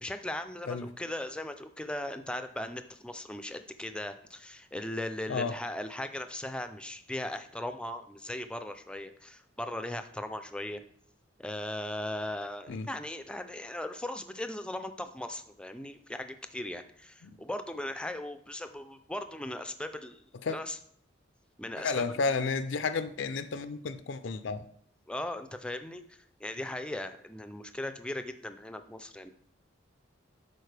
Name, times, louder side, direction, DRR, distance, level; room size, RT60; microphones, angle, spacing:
voice 1, 0.0-10.8 11.4-20.2 20.5-20.8 21.6-22.2 25.1-29.3, left 1 dB, 5° left, 0.4 m, -38 dB
voice 2, 21.8-24.6, left 4 dB, 65° left, 0.5 m, -32 dB
11.0 x 4.3 x 3.3 m
head